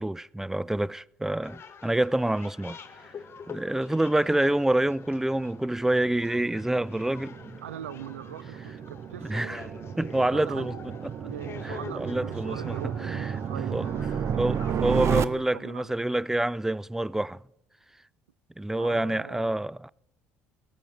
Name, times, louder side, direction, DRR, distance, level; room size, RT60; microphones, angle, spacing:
voice 1, 0.0-2.8 3.5-7.6 9.2-9.7 10.0-10.7 11.2-11.3 11.6-12.8 13.0-13.3 13.7-13.9 14.4-17.4 18.6-19.9, right 1 dB, 5° right, 0.3 m, -27 dB
sound 1, 1.4-14.8, left 6 dB, 35° left, 1.3 m, -47 dB
sound 2, 4.2-15.3, right 7 dB, 40° right, 0.7 m, -33 dB
voice 2, 7.6-9.6 10.1-10.8 11.2-14.5 15.0-16.0 18.8-19.5, right 10 dB, 80° right, 0.4 m, -42 dB
19.0 x 8.8 x 3.5 m
figure-of-eight pair, 55°, 7 cm